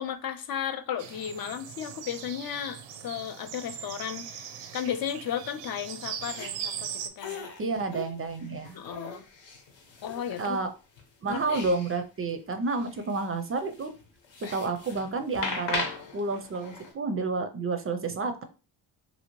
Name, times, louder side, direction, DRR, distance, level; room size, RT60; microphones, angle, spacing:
voice 1, 0.0-4.5 4.7-6.9 7.2-7.5 8.7-9.2 10.0-10.6 11.3-11.6, left 9 dB, 55° left, 9 dB, 0.5 m, -34 dB
sound 1, 1.0-7.1, right 8 dB, 85° right, 0.5 m, -40 dB
sound 2, 6.1-6.5 7.2-10.6 11.0-12.0 12.3-12.4 12.7-16.9, left 4 dB, 85° left, 1.0 m, -39 dB
voice 2, 7.6-8.8 10.4-10.7 11.2-13.9 14.5-15.9 16.1-18.4, right 3 dB, 35° right, 8 dB, 0.4 m, -30 dB
2.9 x 2.7 x 2.9 m, 0.33 s
cardioid pair, 90°, 42 cm